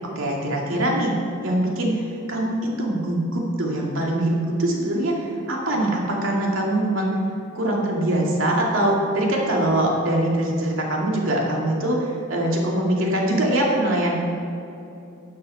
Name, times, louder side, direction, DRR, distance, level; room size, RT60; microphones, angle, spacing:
voice 1, 0.2-1.1 1.4-7.1 7.5-14.1, right 1 dB, 75° right, -2 dB, 2.4 m, -23 dB
12.0 x 7.5 x 5.7 m, 2.7 s
head